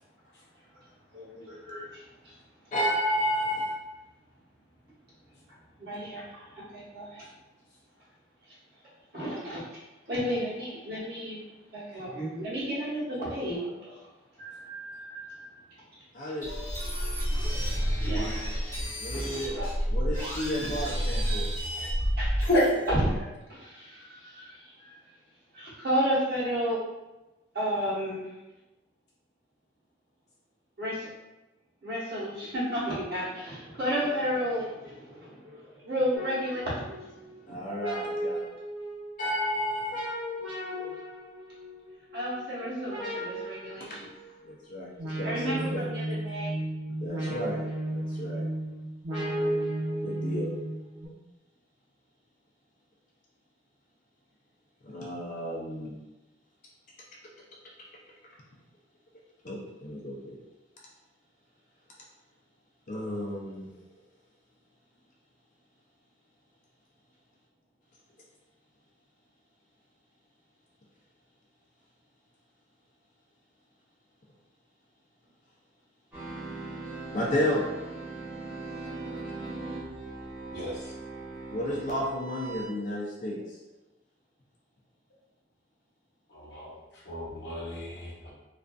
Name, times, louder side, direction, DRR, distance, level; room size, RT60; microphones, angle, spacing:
voice 1, 1.1-2.3 5.8-6.5 6.7-7.2 9.1-9.6 10.1-11.4 11.7-14.0 14.4-15.4 17.3-17.4 18.0-18.3 19.1-19.7 20.6-20.7 21.8-21.9 22.2-22.3 23.1-24.9 25.5-26.8 27.5-28.3 30.8-31.1 31.8-36.6 36.9-37.0 37.4-37.6 42.1-44.1 45.2-46.5, equal, 55° right, -9 dB, 1.0 m, -33 dB
voice 2, 2.7-3.7 16.1-16.5 19.0-19.5 19.9-21.5 37.5-38.5 39.2-40.1 40.6-40.9 43.8-43.9 44.5-45.8 47.0-47.7 47.9-48.4 50.0-50.5 54.8-55.9 59.4-60.4 62.9-63.7 77.1-77.6 81.5-83.4, equal, 45° left, -3 dB, 0.4 m, -32 dB
sound 1, 16.4-23.2, equal, 15° left, 0.9 m, -30 dB
voice 3, 22.4-22.8 80.5-80.9 86.3-86.8 87.0-88.3, equal, 65° left, -5 dB, 0.8 m, -29 dB
sound 2, 36.1-51.1, right 1 dB, 80° right, 0.8 m, -35 dB
sound 3, 76.1-82.7, right 2 dB, 10° right, 0.9 m, -40 dB
2.4 x 2.4 x 2.2 m, 1.0 s
head